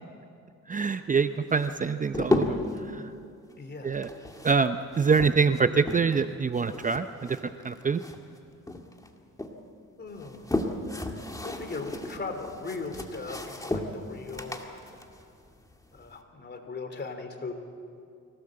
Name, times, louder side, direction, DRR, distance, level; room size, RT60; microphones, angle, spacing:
voice 1, 0.7-2.6 2.9-3.0 3.8-4.1 4.4-8.0, right 5 dB, 25° right, 10 dB, 0.6 m, -25 dB
sound 1, 1.5-2.8 3.9-6.3 6.6-8.4 8.7-9.5 10.1-16.1, left 1 dB, 10° left, 2.1 m, -34 dB
voice 2, 3.6-4.0 10.0-10.4 11.4-14.8 15.9-17.5, left 3 dB, 35° left, 5 dB, 3.3 m, -38 dB
24.5 x 17.5 x 7.7 m, 2.4 s
cardioid pair, 90°, 30 cm